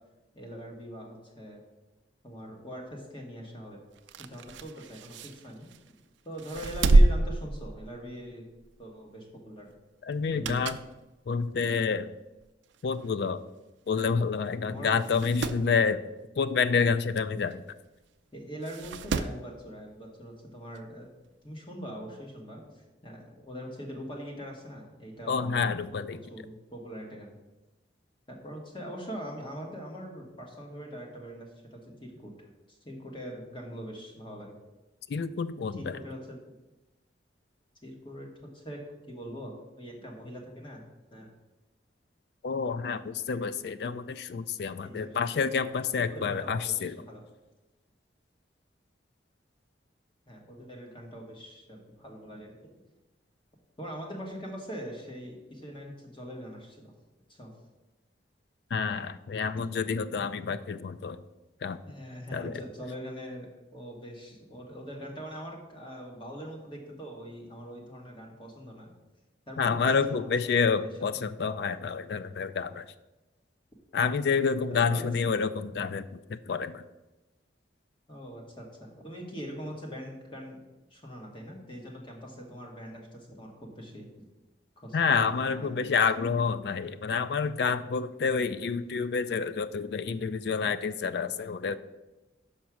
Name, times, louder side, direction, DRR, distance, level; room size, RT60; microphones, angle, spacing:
voice 1, 0.3-1.6 2.2-3.8 4.2-5.7 6.2-8.4 8.8-9.7 10.3-10.6 14.7-15.0 18.3-21.1 21.4-25.6 26.3-27.3 28.3-32.3 32.7-34.6 35.7-36.4 37.8-40.8 41.1-41.3 44.8-45.5 46.1-47.2 50.3-52.5 53.8-56.9 57.3-57.5 60.2-60.5 61.8-68.9 69.5-71.3 74.5-75.1 78.1-78.7 78.9-80.6 80.9-84.1 84.8-85.8, equal, 25° left, 0 dB, 1.3 m, -42 dB
sound 1, 4.0-5.9 6.4-8.3 8.6-8.8 10.1-11.0 11.4-11.5 12.4-12.5 12.7-12.8 13.0-13.1 14.0-14.2 14.5-14.6 15.0-15.7 17.5-17.6 18.6-19.5 20.8-20.9, right 2 dB, 80° right, 0.4 m, -27 dB
voice 2, 10.0-10.8 11.3-12.1 12.8-13.4 13.9-16.0 16.4-17.6 25.3-26.2 35.1-36.0 42.4-46.9 58.7-61.2 61.6-61.8 62.3-62.6 69.6-72.9 73.9-76.8 84.9-91.8, left 5 dB, 60° left, 13 dB, 0.3 m, -28 dB
5.8 x 5.3 x 6.1 m, 1.1 s
head